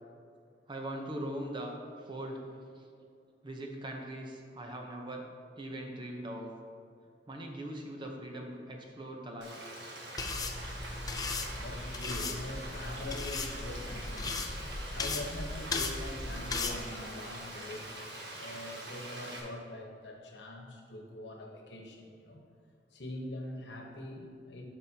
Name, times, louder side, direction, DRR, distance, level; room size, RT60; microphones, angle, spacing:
voice 1, 0.7-1.8 2.1-2.4 3.4-5.2 5.6-6.5 7.3-9.6, right 1 dB, 30° right, 1 dB, 0.8 m, -40 dB
Frying (food), 9.4-19.4, right 1 dB, 75° right, 1.3 m, -44 dB
sound 1, 10.2-16.8, left 3 dB, 20° left, 0.5 m, -37 dB
voice 2, 11.5-14.4 14.9-17.9 18.3-22.4 22.9-24.6, left 1 dB, 75° left, 1 dB, 1.1 m, -43 dB
12.0 x 5.3 x 2.8 m, 2.3 s
head